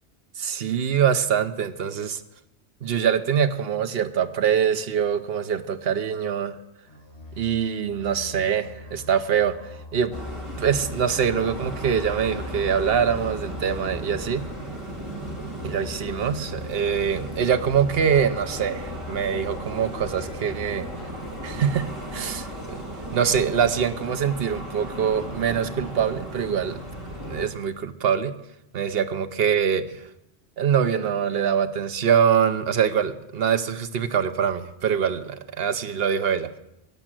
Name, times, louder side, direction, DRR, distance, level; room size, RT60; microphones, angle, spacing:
voice 1, 0.4-2.2 2.8-6.6 7.4-9.6 9.9-10.1 10.6-14.5 15.6-20.9 21.4-22.8 23.1-26.8 27.2-28.4 28.7-30.0 30.6-36.5, right 7 dB, 60° right, 9 dB, 1.1 m, -24 dB
sound 1, 6.9-11.2 11.4-17.2 17.4-22.1, left 2 dB, 65° left, 4.2 m, -44 dB
sound 2, 10.1-27.5, equal, 25° right, 2.0 m, -35 dB
sound 3, 16.9-27.5, left 1 dB, 25° left, 6.6 m, -47 dB
17.5 x 7.6 x 7.5 m, 0.86 s
omnidirectional pair, 1.1 m